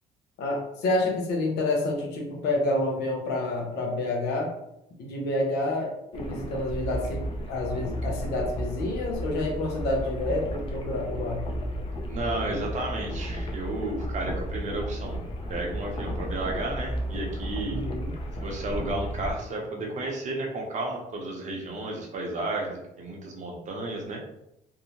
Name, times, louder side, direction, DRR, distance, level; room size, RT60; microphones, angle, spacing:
voice 1, 0.4-4.5 5.0-7.2 7.5-11.5 17.7-18.1, left 2 dB, 85° left, 0 dB, 0.8 m, -28 dB
sound 1, 6.1-19.3, equal, 30° left, 0.5 m, -33 dB
voice 2, 12.1-15.2 15.5-17.8 18.4-24.2, right 2 dB, 45° right, 0 dB, 0.7 m, -32 dB
2.7 x 2.0 x 2.9 m, 0.81 s
cardioid pair, 110°, 17 cm